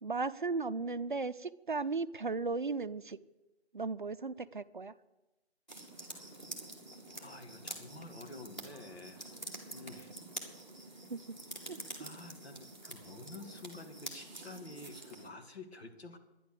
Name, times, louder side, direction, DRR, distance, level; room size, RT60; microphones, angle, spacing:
voice 1, 0.0-3.2 3.7-4.9 11.1-11.3 11.7-11.8, right 4 dB, 50° right, 11 dB, 0.5 m, -36 dB
sound 1, 5.7-15.3, right 2 dB, 10° left, 1.4 m, -47 dB
voice 2, 7.2-9.2 9.7-10.1 11.9-16.2, left 2 dB, 70° left, 4 dB, 2.4 m, -49 dB
11.5 x 10.0 x 6.8 m, 1.0 s
figure-of-eight pair, 170°, 33 cm